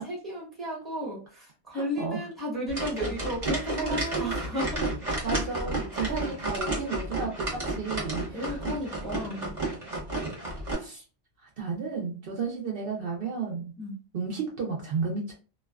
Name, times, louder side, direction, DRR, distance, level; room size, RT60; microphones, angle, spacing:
voice 1, 0.0-4.9 8.3-9.5 10.5-10.7 13.8-14.0, equal, ahead, -3 dB, 0.9 m, -34 dB
voice 2, 1.7-2.2 3.8-4.4 5.2-8.7 10.5-11.0 11.6-13.7 14.1-15.3, right 5 dB, 60° right, 0 dB, 0.8 m, -33 dB
sound 1, 2.7-10.7, right 2 dB, 35° right, 0.9 m, -32 dB
2.4 x 2.2 x 2.3 m, 0.34 s
omnidirectional pair, 1.1 m